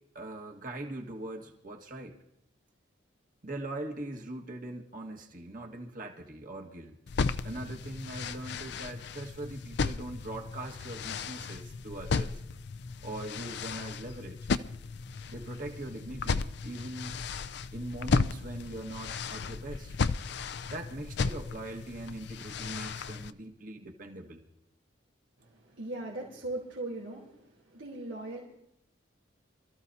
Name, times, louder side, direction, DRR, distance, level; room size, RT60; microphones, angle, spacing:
voice 1, 0.2-2.2 3.4-7.0 7.4-12.4 13.0-14.4 15.3-17.1 17.7-20.0 20.7-24.4, right 1 dB, 45° right, 2 dB, 1.7 m, -41 dB
sound 1, 7.1-23.3, left 4 dB, 60° left, 0.4 m, -34 dB
voice 2, 25.4-27.4 27.7-28.4, right 2 dB, 90° right, -4 dB, 3.2 m, -39 dB
27.0 x 14.0 x 2.8 m, 0.77 s
head